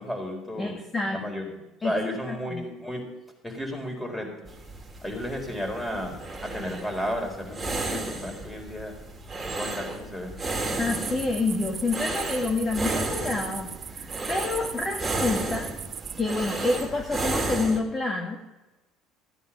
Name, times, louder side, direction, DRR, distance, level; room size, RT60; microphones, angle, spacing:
voice 1, 0.0-0.8 1.1-3.0 3.4-4.3 5.0-8.9 9.5-10.3, equal, 5° left, 2 dB, 4.5 m, -33 dB
voice 2, 0.6-1.2 1.8-1.9 2.3-2.6 10.8-15.7 16.2-18.4, left 3 dB, 25° left, 1 dB, 1.9 m, -28 dB
sound 1, 4.5-17.8, right 2 dB, 20° right, 2.9 m, -33 dB
sound 2, 10.8-16.2, right 7 dB, 40° right, 0.6 m, -38 dB
15.5 x 9.9 x 5.2 m, 1.0 s
supercardioid pair, 100°, 0 cm